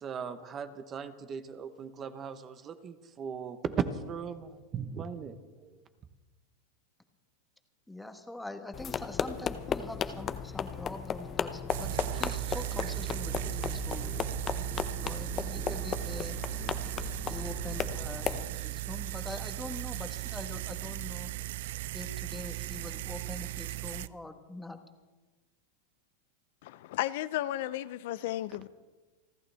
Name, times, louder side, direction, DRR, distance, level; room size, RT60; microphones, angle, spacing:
voice 1, 0.0-5.8, right 6 dB, 25° right, 1.0 m, -37 dB
voice 2, 7.9-14.1 15.0-16.4 17.2-21.3 21.9-24.8, left 2 dB, 5° left, 1.3 m, -44 dB
sound 1, 8.7-18.5, left 8 dB, 25° left, 0.7 m, -36 dB
sound 2, 11.7-24.1, right 19 dB, 70° right, 0.4 m, -36 dB
voice 3, 26.6-28.7, left 14 dB, 65° left, 0.5 m, -34 dB
29.0 x 11.5 x 3.4 m
supercardioid pair, 135°, 0 cm